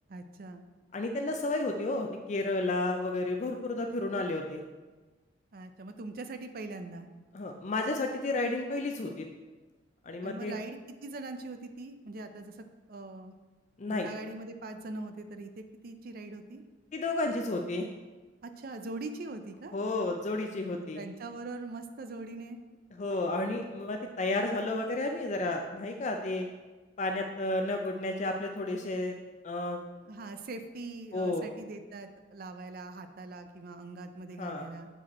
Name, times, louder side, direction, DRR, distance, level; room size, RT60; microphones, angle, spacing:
voice 1, 0.1-0.6 5.5-7.1 10.2-13.3 13.9-16.6 18.4-19.8 20.9-22.6 30.1-34.9, right 2 dB, 55° right, 7 dB, 0.5 m, -42 dB
voice 2, 0.9-4.6 7.3-9.2 10.0-10.6 13.8-14.1 16.9-17.9 19.7-21.0 23.0-26.5 27.0-29.1 29.4-29.8 31.1-31.4 34.4-34.7, left 2 dB, 40° left, 3 dB, 0.4 m, -32 dB
7.8 x 5.0 x 4.2 m, 1.3 s
head